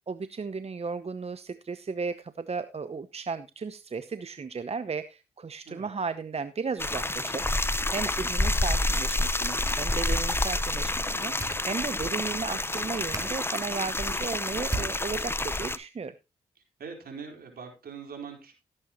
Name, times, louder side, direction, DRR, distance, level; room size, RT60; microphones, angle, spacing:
voice 1, 0.1-16.1, right 5 dB, 40° right, 12 dB, 0.8 m, -35 dB
sound 1, 6.8-15.8, left 2 dB, 15° left, 0.9 m, -28 dB
sound 2, 11.3-15.7, right 2 dB, 20° right, 4.2 m, -42 dB
voice 2, 16.6-18.5, right 5 dB, 70° right, 4 dB, 4.3 m, -42 dB
16.0 x 8.8 x 3.0 m, 0.26 s
supercardioid pair, 45°, 16 cm